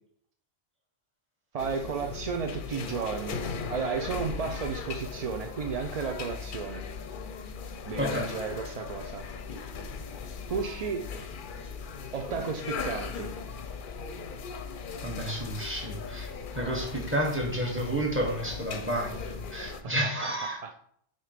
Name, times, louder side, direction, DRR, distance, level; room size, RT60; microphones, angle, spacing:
voice 1, 1.5-3.4 3.7-6.8 7.8-9.2 10.4-11.1 12.1-13.3 19.6-20.4 20.6-20.8, right 5 dB, 50° right, 4 dB, 0.4 m, -33 dB
sound 1, 1.6-19.8, left 5 dB, 55° left, 0.7 m, -38 dB
voice 2, 8.0-8.3 15.0-20.6, right 1 dB, 10° right, 0 dB, 1.2 m, -31 dB
6.4 x 2.9 x 5.0 m, 0.66 s
omnidirectional pair, 1.1 m